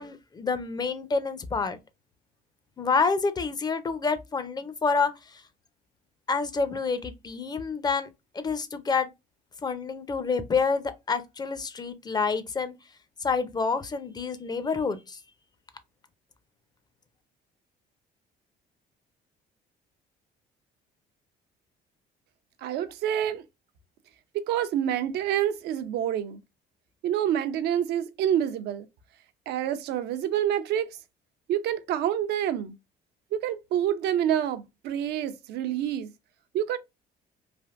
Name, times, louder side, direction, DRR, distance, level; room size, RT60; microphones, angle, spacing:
voice 1, 0.0-1.8 2.8-5.4 6.3-8.1 8.3-9.1 9.6-12.7 13.2-15.2, left 4 dB, 25° left, 0.5 m, -28 dB
voice 2, 22.6-23.4 24.3-26.4 27.0-28.9 29.5-31.0 31.5-32.7 33.3-36.1 36.5-36.8, right 10 dB, 75° right, 0.6 m, -27 dB
3.3 x 2.5 x 2.4 m
cardioid pair, 110°, 17 cm